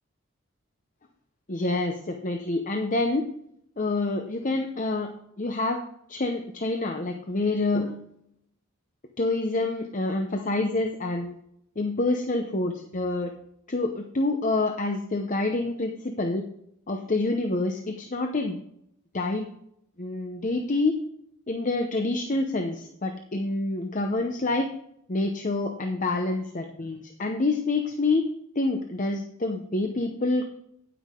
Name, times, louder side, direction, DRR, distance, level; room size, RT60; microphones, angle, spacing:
voice 1, 1.5-3.3 3.8-5.1 5.4-5.8 6.1-8.0 9.2-11.3 11.8-13.3 13.7-16.4 16.9-18.6 19.1-19.5 20.0-21.0 21.5-24.7 25.1-28.2 28.6-30.4, left 2 dB, 40° left, 4 dB, 0.7 m, -27 dB
9.5 x 9.3 x 3.6 m, 0.73 s
head